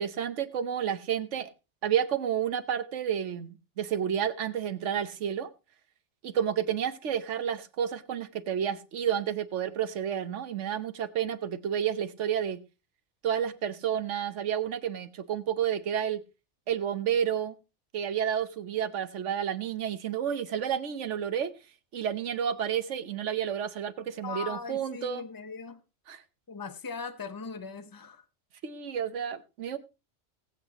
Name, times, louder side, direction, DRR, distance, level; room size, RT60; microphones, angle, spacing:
voice 1, 0.0-1.5 1.8-5.5 6.2-12.6 13.2-16.2 16.7-17.5 17.9-21.5 21.9-25.2 26.1-26.2 28.6-29.8, right 9 dB, 90° right, 1.3 m, -30 dB
voice 2, 24.2-25.8 26.5-28.2, left 5 dB, 20° left, 0.8 m, -39 dB
19.5 x 8.2 x 2.9 m
omnidirectional pair, 1.2 m